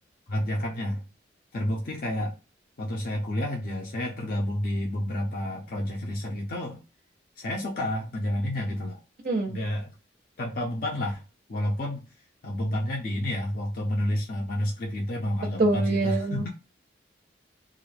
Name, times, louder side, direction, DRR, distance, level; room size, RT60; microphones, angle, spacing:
voice 1, 0.3-1.0 1.5-2.3 2.8-6.8 7.4-9.0 9.5-9.9 10.4-11.2 11.5-12.1 12.4-16.5, left 1 dB, 50° left, -1 dB, 0.5 m, -30 dB
voice 2, 9.3-9.6 15.6-16.5, right 2 dB, 45° right, 2 dB, 0.4 m, -25 dB
2.4 x 2.0 x 3.1 m, 0.31 s
head